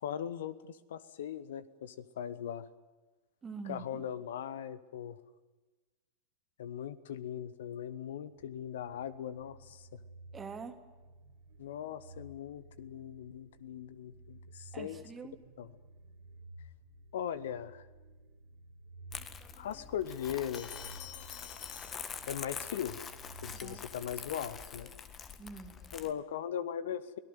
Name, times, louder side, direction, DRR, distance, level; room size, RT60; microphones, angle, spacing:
voice 1, 0.0-2.7 3.7-5.2 6.6-10.0 11.6-15.0 15.6-15.7 17.1-17.9 19.6-21.0 22.3-23.0 23.4-24.9 25.9-27.2, left 9 dB, 60° left, 17 dB, 1.1 m, -39 dB
voice 2, 3.4-4.0 10.3-10.8 14.7-15.4 23.5-23.9 25.4-25.8, right 5 dB, 20° right, 7 dB, 2.6 m, -45 dB
sound 1, 8.3-25.2, right 2 dB, 50° right, 2.6 m, -55 dB
Crumpling crinkling, 19.1-26.1, left 7 dB, 25° left, 1.7 m, -45 dB
sound 2, 20.5-22.8, left 11 dB, 45° left, 2.5 m, -50 dB
24.0 x 18.0 x 9.2 m, 1.2 s
figure-of-eight pair, 90°, 0 cm